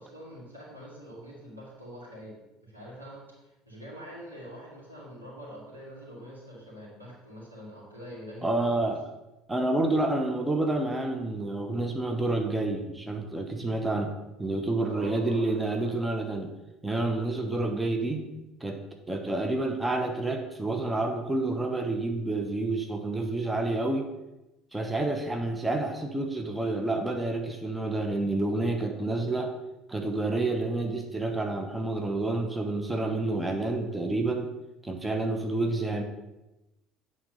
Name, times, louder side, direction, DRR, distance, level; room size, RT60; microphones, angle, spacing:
voice 1, 0.0-2.3 2.6-8.9 14.8-15.9, equal, 90° right, -7 dB, 2.4 m, -45 dB
voice 2, 8.4-9.0 9.5-14.1 14.4-16.5 16.8-18.2 18.6-24.1 24.7-29.5 29.9-34.5 34.8-36.0, right 2 dB, 10° right, 3 dB, 0.9 m, -29 dB
8.8 x 3.7 x 5.3 m, 0.99 s
figure-of-eight pair, 60°, 0 cm